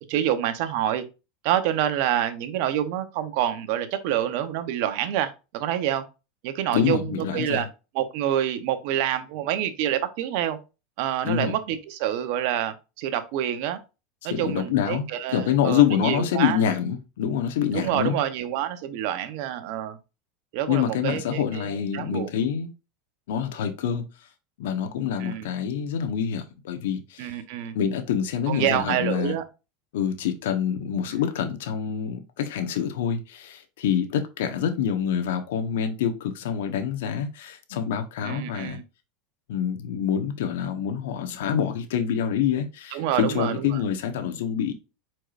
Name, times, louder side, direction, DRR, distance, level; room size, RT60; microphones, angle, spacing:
voice 1, 0.1-1.0 1.4-6.0 6.4-7.7 7.9-10.6 11.0-13.8 14.2-16.6 17.7-20.0 20.5-22.3 25.2-25.5 27.2-27.8 28.5-29.4 38.2-38.8 42.9-43.8, right 11 dB, 65° right, 0.9 m, -27 dB
voice 2, 6.7-7.6 11.2-11.5 14.3-18.2 20.7-22.7 23.3-24.0 24.6-27.3 27.7-29.3 29.9-38.8 39.5-44.7, left 8 dB, 80° left, 1.0 m, -26 dB
4.7 x 4.5 x 2.5 m
supercardioid pair, 125°, 0 cm